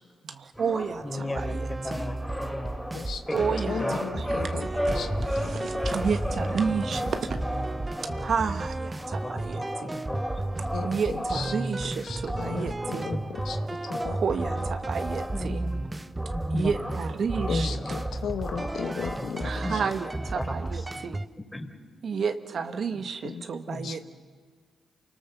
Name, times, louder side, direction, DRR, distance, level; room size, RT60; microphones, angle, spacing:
voice 1, 0.2-2.0 3.3-7.4 8.2-9.9 10.8-13.1 14.0-15.6 16.5-17.8 19.4-21.2 22.0-24.0, right 6 dB, 60° right, 9 dB, 1.3 m, -31 dB
sound 1, 0.6-20.0, equal, ahead, 4.2 m, -35 dB
voice 2, 1.0-2.8 3.3-5.2 6.7-7.0 7.2-7.5 7.8-8.3 9.2-9.4 9.8-10.3 12.5-12.6 13.0-13.2 15.3-15.8 16.3-17.0 17.5-18.0 19.6-19.8 20.1-21.1 21.5-21.7 23.7-23.9, left 1 dB, 15° left, 6 dB, 3.9 m, -36 dB
sound 2, 1.3-21.3, right 2 dB, 25° right, 0.8 m, -33 dB
voice 3, 3.7-4.7 5.0-5.1 5.4-5.7 10.7-10.9 11.3-11.4 12.1-13.2 13.5-13.6 13.9-14.2 17.5-19.6 23.2-23.4 23.8-23.9, left 7 dB, 70° left, 8 dB, 1.0 m, -35 dB
29.0 x 18.5 x 6.9 m, 1.5 s
hypercardioid pair, 40°, 0 cm